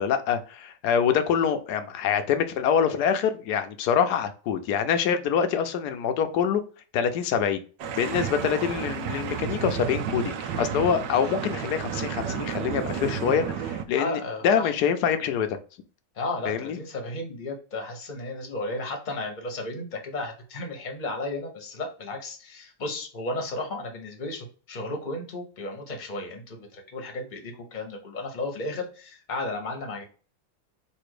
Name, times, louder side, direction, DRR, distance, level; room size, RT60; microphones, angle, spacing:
voice 1, 0.0-6.6 6.9-7.6 8.0-15.6 16.5-16.8, left 7 dB, 70° left, 8 dB, 1.1 m, -25 dB
sound 1, 7.8-13.8, right 8 dB, 75° right, 1.3 m, -31 dB
voice 2, 13.9-14.7 16.1-30.0, left 2 dB, 30° left, 3 dB, 1.0 m, -34 dB
4.3 x 2.7 x 4.7 m, 0.37 s
omnidirectional pair, 1.9 m